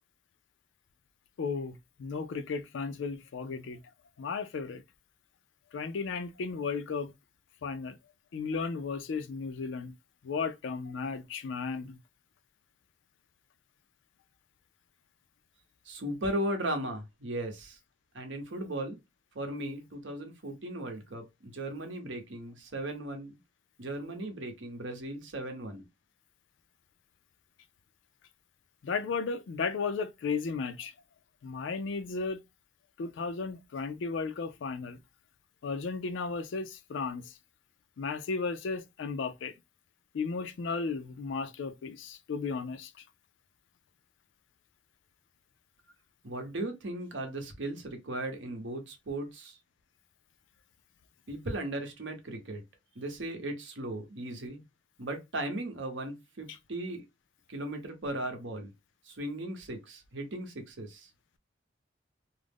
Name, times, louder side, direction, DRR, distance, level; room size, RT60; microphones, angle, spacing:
voice 1, 1.4-3.8 4.2-4.8 5.7-7.1 7.6-8.0 8.3-9.9 10.2-12.0 28.8-30.9 31.4-32.4 33.0-35.0 35.6-37.4 38.0-39.6 40.1-43.0 56.5-56.6, left 4 dB, 85° left, 0.4 m, -34 dB
voice 2, 15.9-17.8 18.1-19.0 19.3-23.3 23.8-25.8 46.2-49.6 51.3-52.6 52.9-54.6 55.0-57.0 57.5-58.7 59.1-61.1, right 1 dB, 80° right, 0.8 m, -37 dB
2.4 x 2.0 x 3.4 m
head